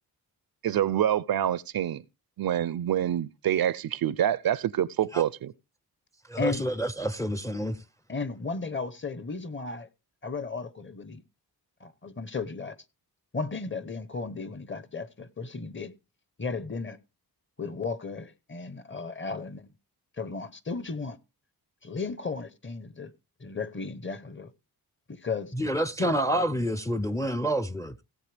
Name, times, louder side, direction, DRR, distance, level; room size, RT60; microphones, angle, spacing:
voice 1, 0.6-2.0 2.4-5.5, right 10 dB, 65° right, 0.6 m, -26 dB
voice 2, 6.3-7.8 25.5-28.0, right 1 dB, 10° left, 0.5 m, -28 dB
voice 3, 8.1-9.9 10.2-11.2 11.8-12.8 13.3-15.9 16.4-17.0 17.6-19.7 20.2-21.2 21.8-23.1 23.4-24.5 25.1-25.5 26.0-26.2, left 4 dB, 30° left, 0.9 m, -34 dB
17.0 x 7.7 x 3.4 m
wide cardioid pair, 115°, 39 cm